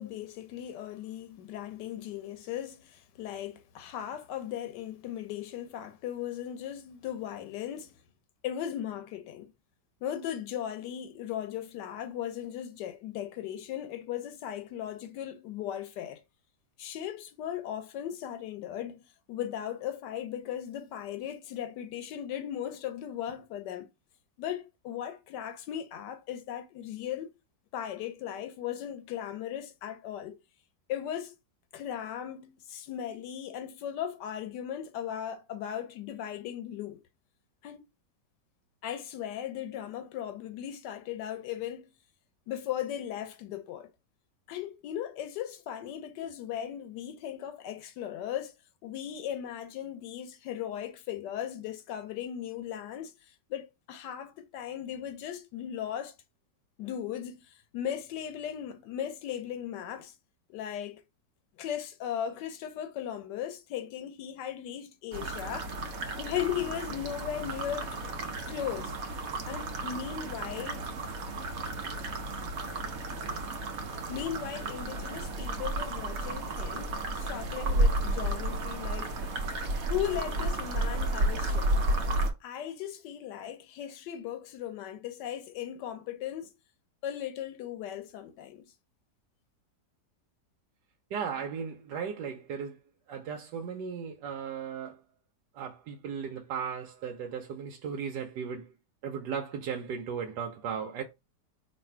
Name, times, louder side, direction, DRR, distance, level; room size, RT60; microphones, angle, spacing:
voice 1, 0.0-7.9 8.4-9.5 10.0-16.2 16.8-19.0 19.3-23.9 24.4-27.3 27.7-30.4 30.9-31.3 31.7-37.0 37.6-37.9 38.8-41.9 42.5-43.9 44.5-48.5 48.8-53.1 53.5-56.1 56.8-60.1 60.5-61.0 61.6-65.7 66.2-68.0 68.5-68.9 69.5-70.9 74.1-79.1 79.8-81.7 82.4-86.5 87.0-88.7, left 10 dB, 85° left, 1.2 m, -37 dB
sound 1, 65.1-82.3, right 2 dB, 65° right, 1.1 m, -32 dB
voice 2, 91.1-92.8 93.1-95.0 95.5-98.7 99.0-101.0, right 7 dB, 90° right, 1.3 m, -36 dB
3.2 x 2.6 x 4.3 m
omnidirectional pair, 1.8 m